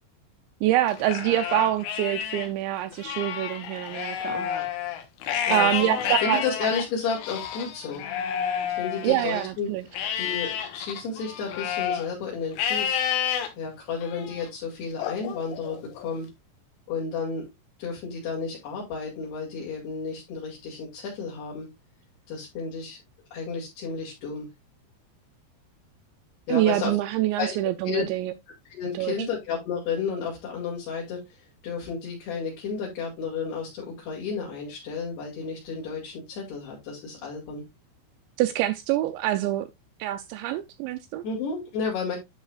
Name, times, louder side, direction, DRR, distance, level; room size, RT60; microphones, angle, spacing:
voice 1, 0.6-4.5 5.5-6.4 9.0-9.9 26.5-28.3 28.9-29.1 38.4-39.7 40.0-41.2, right 13 dB, 85° right, 2.7 m, -25 dB
Livestock farm animals working animals, 0.9-2.5 2.9-9.5 9.9-12.1 12.6-13.5 14.0-14.4 15.0-16.1, left 9 dB, 80° left, 3.9 m, -30 dB
voice 2, 5.5-6.0 6.2-8.0 8.7-9.7 10.2-13.0 13.5-16.3 16.9-17.5 17.8-21.7 22.3-23.0 23.3-24.5 26.5-26.9 27.4-27.6 27.8-28.1 28.7-37.6 41.2-42.2, left 5 dB, 60° left, 4.3 m, -32 dB
11.0 x 6.4 x 2.4 m
omnidirectional pair, 5.6 m